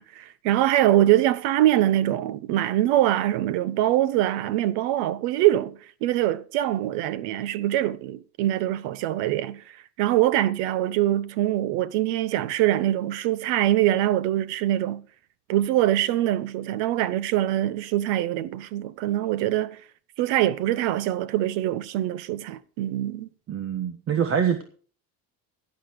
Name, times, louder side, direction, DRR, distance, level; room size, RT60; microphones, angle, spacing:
voice 1, 0.0-15.0 15.5-19.8 20.2-23.3, right 13 dB, 80° right, 1.1 m, -23 dB
voice 2, 23.5-24.6, right 7 dB, 35° right, 1.4 m, -25 dB
17.5 x 11.0 x 3.2 m
cardioid pair, 165°, 41 cm